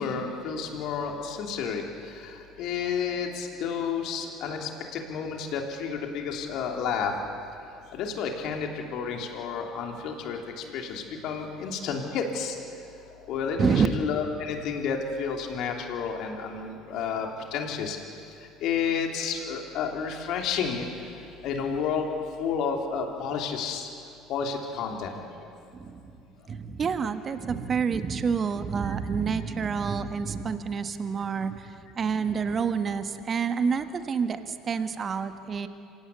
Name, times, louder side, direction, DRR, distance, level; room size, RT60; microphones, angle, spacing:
voice 1, 0.0-1.8 2.1-7.2 7.9-12.6 13.3-18.0 18.6-20.9 21.4-22.1 22.4-23.9 24.3-25.2 28.8-28.9, left 6 dB, 60° left, 2 dB, 3.2 m, -31 dB
voice 2, 25.7-26.2 26.5-35.7, right 6 dB, 40° right, 9 dB, 1.5 m, -28 dB
26.5 x 17.0 x 8.5 m, 2.6 s
hypercardioid pair, 65°, 0 cm